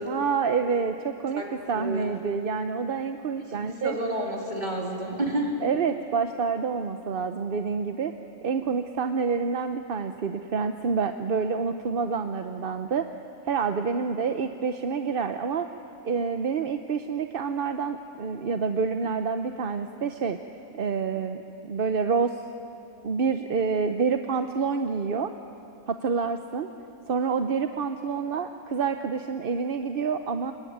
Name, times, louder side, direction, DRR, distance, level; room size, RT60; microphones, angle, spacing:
voice 1, 0.1-1.4 1.7-4.0 5.6-8.1 8.4-13.1 13.4-15.7 16.0-20.4 20.7-22.4 23.0-25.3 25.9-26.7 27.1-30.5, right 5 dB, 50° right, 7 dB, 0.9 m, -27 dB
voice 2, 1.7-2.1 3.5-5.6, right 1 dB, 35° right, 0 dB, 3.6 m, -30 dB
26.5 x 22.5 x 9.4 m, 2.8 s
omnidirectional pair, 1.4 m